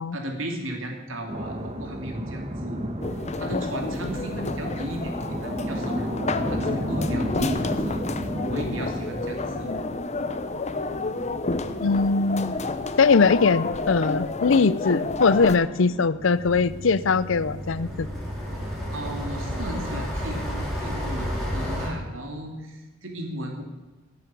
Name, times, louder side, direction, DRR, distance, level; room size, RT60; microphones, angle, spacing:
voice 1, 0.1-2.9 3.4-6.2 6.5-8.0 8.5-9.7 18.9-23.6, right 1 dB, 75° right, 3 dB, 2.9 m, -35 dB
sound 1, 1.3-20.1, equal, 30° right, 1.7 m, -34 dB
sound 2, 3.0-15.6, left 3 dB, 35° left, 0.9 m, -30 dB
voice 2, 11.8-12.6 13.0-18.1, left 4 dB, 70° left, 17 dB, 0.6 m, -21 dB
sound 3, 16.2-21.9, equal, ahead, 4.4 m, -32 dB
16.5 x 7.8 x 8.4 m, 1.2 s
head